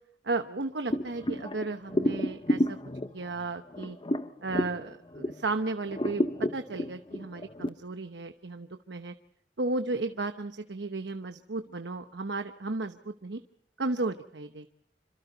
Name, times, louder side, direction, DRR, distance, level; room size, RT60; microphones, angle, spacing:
voice 1, 0.2-2.8 3.1-4.0 4.4-6.2 6.5-9.1 9.6-13.4 13.8-14.7, right 3 dB, 80° right, 7 dB, 1.0 m, -34 dB
sound 1, 0.9-5.5 5.9-7.7, left 1 dB, 30° left, 1.0 m, -31 dB
27.5 x 26.0 x 4.0 m, 0.72 s
head